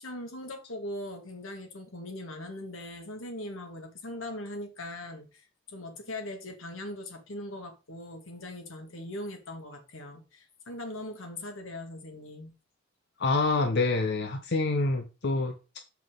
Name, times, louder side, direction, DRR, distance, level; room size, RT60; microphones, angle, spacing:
voice 1, 0.0-12.5, left 1 dB, 90° left, 2.0 m, -40 dB
voice 2, 13.2-15.8, left 3 dB, 60° left, 0.8 m, -27 dB
7.1 x 5.7 x 3.8 m
head